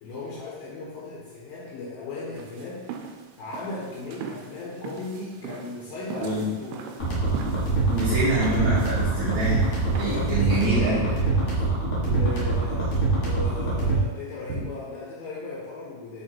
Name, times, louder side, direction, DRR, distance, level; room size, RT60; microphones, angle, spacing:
voice 1, 0.0-2.9 3.4-6.8 10.0-11.5 12.1-16.2, left 3 dB, 70° left, -5 dB, 2.7 m, -37 dB
sound 1, 2.4-10.8, right 6 dB, 85° right, 2.5 m, -40 dB
sound 2, 7.0-14.0, right 3 dB, 55° left, 1.3 m, -24 dB
voice 2, 7.9-9.7 9.9-11.1 12.0-12.2 14.5-14.6, right 2 dB, 65° right, -8 dB, 1.9 m, -26 dB
6.8 x 3.4 x 4.4 m, 1.3 s
omnidirectional pair, 4.5 m